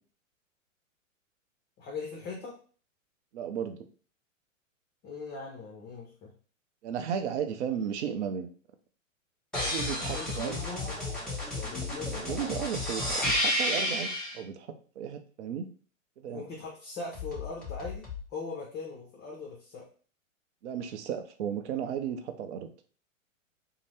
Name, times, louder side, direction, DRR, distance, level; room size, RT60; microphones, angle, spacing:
voice 1, 1.8-2.6 5.0-6.3 10.1-11.0 11.5-12.4 16.3-19.8, left 4 dB, 30° left, -3 dB, 0.7 m, -40 dB
voice 2, 3.3-3.8 6.8-8.5 9.7-10.6 12.1-14.7 15.0-15.7 16.2-16.5 20.6-22.7, right 8 dB, 60° right, 7 dB, 0.6 m, -34 dB
sound 1, 9.5-14.4 17.1-18.2, left 1 dB, ahead, 1.1 m, -32 dB
2.7 x 2.0 x 3.2 m, 0.41 s
hypercardioid pair, 120°, 40 cm